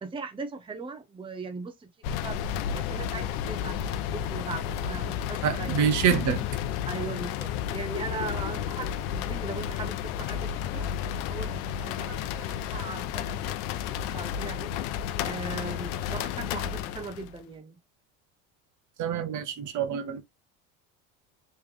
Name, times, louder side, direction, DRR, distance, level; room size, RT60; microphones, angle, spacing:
voice 1, 0.0-1.9 2.2-2.4 2.7-5.9 6.9-10.9 11.3-13.6 13.9-14.7 15.2-17.8, right 4 dB, 15° right, 0.7 m, -39 dB
sound 1, 2.0-17.4, left 9 dB, 70° left, 0.6 m, -32 dB
voice 2, 5.4-6.5 19.0-20.2, right 7 dB, 50° right, 0.9 m, -26 dB
3.3 x 3.2 x 3.2 m
supercardioid pair, 85°, 37 cm